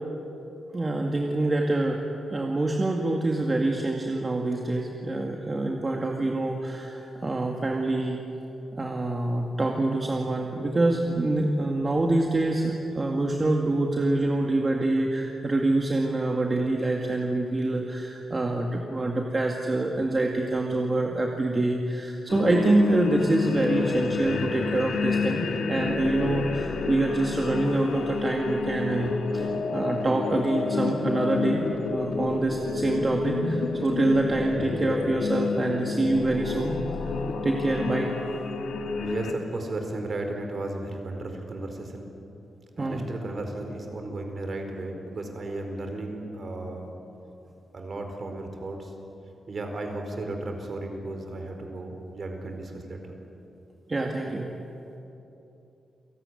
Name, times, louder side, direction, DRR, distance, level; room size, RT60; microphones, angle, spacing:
voice 1, 0.7-2.0 2.3-8.2 8.8-31.6 31.9-36.8 37.4-38.2 42.8-43.1 53.9-54.5, right 2 dB, 25° right, 1 dB, 2.1 m, -26 dB
sound 1, 22.3-39.3, left 4 dB, 90° left, 2.1 m, -29 dB
voice 2, 39.0-42.1 42.8-46.9 47.7-48.9 49.5-53.1, right 2 dB, 45° right, 4 dB, 4.5 m, -34 dB
28.5 x 17.5 x 9.9 m, 2.9 s
wide cardioid pair, 115°, 0 cm